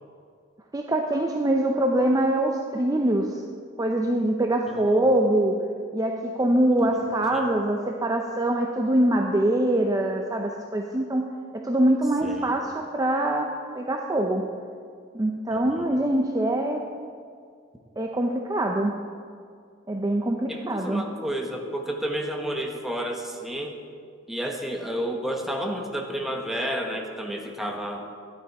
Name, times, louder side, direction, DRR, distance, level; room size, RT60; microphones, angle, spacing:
voice 1, 0.7-3.4 3.8-5.5 5.9-11.2 11.5-13.5 13.7-14.4 15.1-16.9 18.0-18.9 19.9-21.0, right 1 dB, 20° right, 2 dB, 0.6 m, -24 dB
voice 2, 4.7-5.1 6.8-7.5 12.2-12.6 15.5-16.0 20.5-23.8 24.3-28.1, equal, ahead, 1 dB, 1.1 m, -31 dB
12.0 x 10.0 x 4.7 m, 2.2 s
head